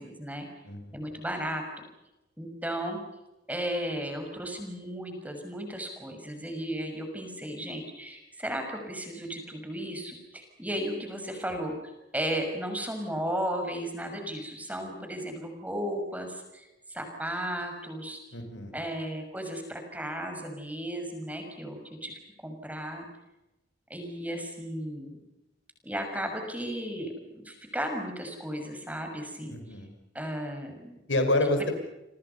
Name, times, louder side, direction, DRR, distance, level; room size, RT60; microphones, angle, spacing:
voice 1, 0.0-0.5 0.9-1.6 2.4-3.0 3.5-11.7 12.1-18.2 18.7-22.1 22.4-23.1 23.9-25.2 25.8-29.5 30.1-31.0, equal, 10° right, 5 dB, 6.4 m, -35 dB
voice 2, 0.7-1.1 18.3-18.8 29.5-29.9 31.1-31.7, left 1 dB, 85° left, 6 dB, 5.7 m, -28 dB
29.5 x 25.5 x 5.7 m, 0.97 s
head